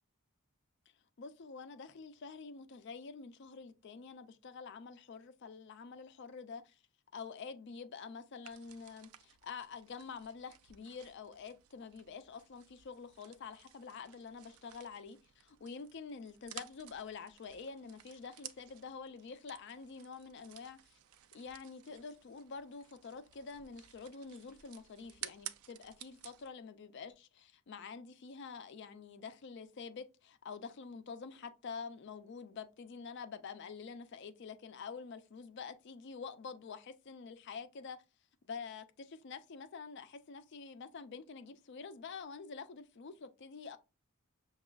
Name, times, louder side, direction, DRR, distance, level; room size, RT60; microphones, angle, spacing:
voice 1, 1.2-6.8 7.1-21.0 21.3-38.0 38.5-43.8, left 5 dB, 55° left, 0.4 m, -47 dB
sound 1, 8.4-26.5, right 12 dB, 85° right, 0.4 m, -54 dB
5.9 x 2.3 x 2.2 m
head